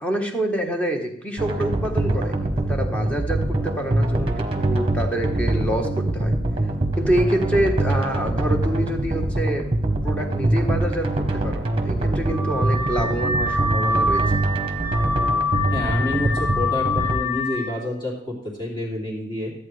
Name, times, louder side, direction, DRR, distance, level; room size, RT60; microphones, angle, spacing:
voice 1, 0.0-6.3 7.0-9.7 10.0-14.2, right 1 dB, 5° left, 2 dB, 1.2 m, -26 dB
sound 1, 1.4-17.1, right 1 dB, 30° right, 1.0 m, -24 dB
Car / Alarm, 12.3-17.7, left 2 dB, 60° left, 2.2 m, -25 dB
voice 2, 15.7-19.5, left 1 dB, 25° left, -2 dB, 2.7 m, -29 dB
13.5 x 8.3 x 3.3 m, 0.69 s
head